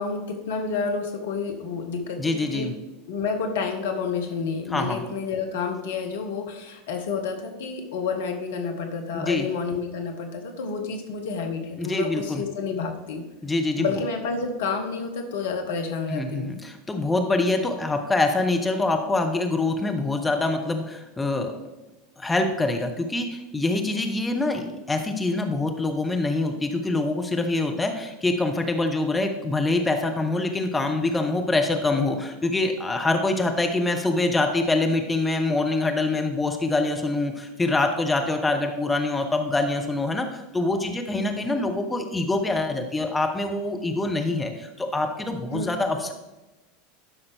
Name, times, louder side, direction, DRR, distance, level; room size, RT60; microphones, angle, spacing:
voice 1, 0.0-2.7 3.1-13.2 13.8-16.5 45.5-45.7, left 5 dB, 60° left, 5 dB, 1.0 m, -29 dB
voice 2, 2.2-2.7 4.7-5.0 9.1-9.5 11.8-12.4 13.4-13.9 16.1-21.5 22.2-46.1, left 2 dB, 10° left, 4 dB, 0.9 m, -25 dB
12.0 x 5.6 x 3.4 m, 1.1 s
figure-of-eight pair, 80°, 0 cm